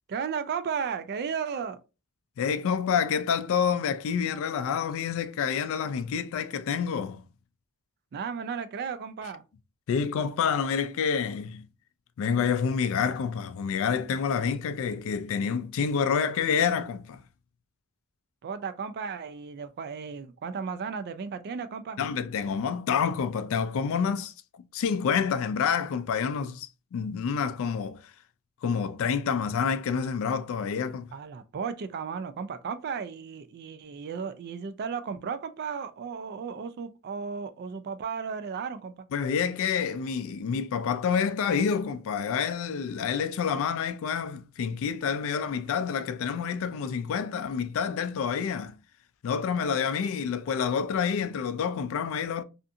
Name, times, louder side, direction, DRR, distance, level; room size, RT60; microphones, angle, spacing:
voice 1, 0.1-1.8 8.1-9.4 18.4-22.0 31.1-39.1, right 6 dB, 45° right, 0.3 m, -34 dB
voice 2, 2.4-7.3 9.9-11.6 12.2-17.2 22.0-24.3 24.7-28.0 28.6-31.1 39.1-48.7 49.2-52.4, left 6 dB, 65° left, 0.3 m, -28 dB
2.5 x 2.4 x 2.6 m
head